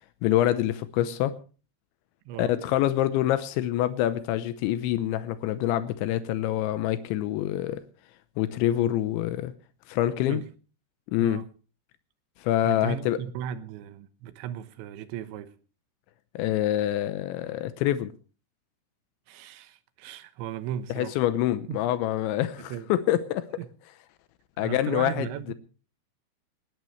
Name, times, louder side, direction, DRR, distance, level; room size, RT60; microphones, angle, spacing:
voice 1, 0.2-1.4 2.4-7.8 8.4-9.5 9.9-10.4 11.1-11.4 12.4-13.2 16.3-18.1 20.9-23.5 24.6-25.5, left 13 dB, 85° left, 3.2 m, -26 dB
voice 2, 12.6-15.6 19.3-21.2 21.7-21.8 22.6-22.9 23.6-23.7 24.6-25.5, right 10 dB, 90° right, 3.4 m, -36 dB
20.0 x 19.0 x 3.2 m
omnidirectional pair, 5.1 m